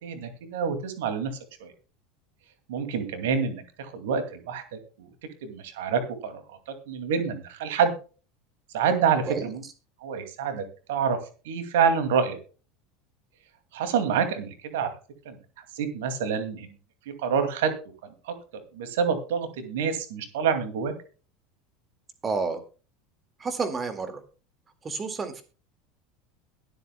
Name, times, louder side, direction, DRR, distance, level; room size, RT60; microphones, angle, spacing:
voice 1, 0.0-1.3 1.6-1.7 2.7-5.1 5.4-7.9 8.7-9.6 10.0-11.2 11.4-12.4 13.7-14.9 15.3-15.4 15.7-16.7 17.2-17.7 18.0-18.3 18.7-20.9, right 6 dB, 65° right, 8 dB, 2.4 m, -27 dB
voice 2, 22.2-22.6 23.4-24.2 24.8-25.4, right 4 dB, 25° right, 8 dB, 2.0 m, -30 dB
21.5 x 8.0 x 2.3 m, 0.35 s
figure-of-eight pair, 75°, 0 cm